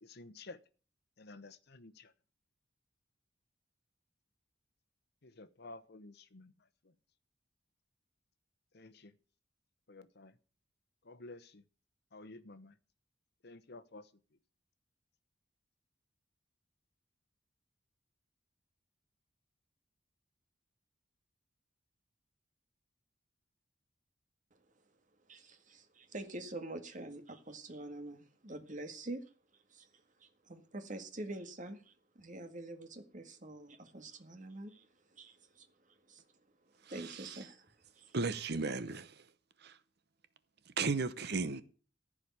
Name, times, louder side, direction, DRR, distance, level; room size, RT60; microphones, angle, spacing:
voice 1, 0.0-0.6 1.2-2.1 5.2-6.5 8.7-9.1 9.9-10.3 11.0-11.6 12.1-12.8 13.4-14.1, left 2 dB, 60° left, 1.0 m, -52 dB
voice 2, 25.3-29.2 29.7-36.3 36.9-37.7 37.9-38.1, right 2 dB, 45° right, 1.8 m, -46 dB
voice 3, 38.1-39.2 39.6-39.8 40.8-41.6, right 4 dB, 60° right, 0.9 m, -35 dB
14.5 x 5.0 x 8.6 m
head